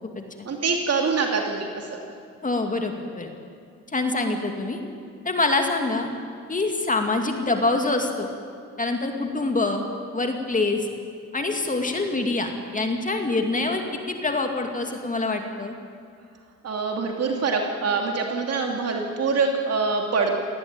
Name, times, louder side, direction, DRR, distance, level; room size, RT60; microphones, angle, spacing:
voice 1, 0.4-2.0 16.6-20.3, right 4 dB, 55° right, 2 dB, 2.7 m, -25 dB
voice 2, 2.4-3.3 3.9-4.8 5.2-6.1 6.5-8.3 8.8-9.9 10.1-10.9 11.3-15.8, left 2 dB, 25° left, 4 dB, 2.4 m, -25 dB
18.5 x 17.0 x 9.0 m, 2.4 s
cardioid pair, 90°, 30 cm